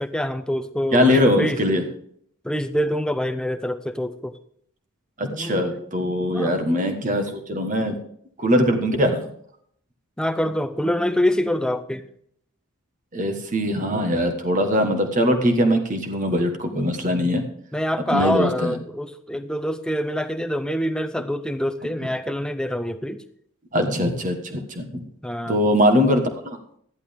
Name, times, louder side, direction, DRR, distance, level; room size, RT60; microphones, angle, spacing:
voice 1, 0.0-1.6 2.4-4.4 5.2-5.9 6.3-6.6 7.0-7.3 10.2-12.1 17.7-23.2 25.2-25.6, equal, 5° left, 9 dB, 0.5 m, -26 dB
voice 2, 0.9-1.8 5.2-8.0 8.4-9.2 13.1-17.4 18.1-18.7 23.7-25.0 25.5-26.6, equal, 35° right, 5 dB, 1.4 m, -21 dB
13.5 x 11.0 x 3.6 m, 0.66 s
head